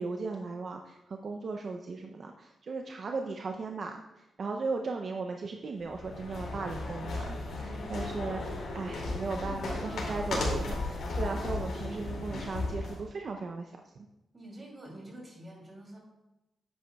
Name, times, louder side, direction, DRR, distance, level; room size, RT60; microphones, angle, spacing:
voice 1, 0.0-8.4 8.7-13.7, right 4 dB, 55° right, 3 dB, 0.5 m, -37 dB
sound 1, 5.8-13.0, left 2 dB, 90° left, 2.3 m, -35 dB
voice 2, 9.4-10.3 14.3-16.0, right 1 dB, 25° right, -1 dB, 2.7 m, -48 dB
9.7 x 8.1 x 2.3 m, 0.98 s
cardioid pair, 105°, 0 cm